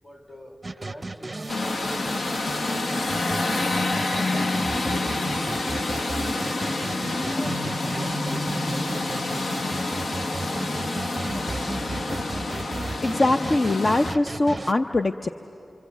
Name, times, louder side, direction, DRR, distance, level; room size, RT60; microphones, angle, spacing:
voice 1, 0.0-2.7 3.7-4.7 5.0-6.3 7.0-8.4 10.4-12.2, equal, 15° left, 5 dB, 3.3 m, -45 dB
sound 1, 0.6-14.7, right 3 dB, 35° right, 0.5 m, -35 dB
sound 2, 1.5-14.2, left 2 dB, 75° left, 1.1 m, -27 dB
voice 2, 13.0-15.3, left 2 dB, 45° left, 6 dB, 0.6 m, -22 dB
28.0 x 25.0 x 8.1 m, 2.8 s
wide cardioid pair, 80°, 0 cm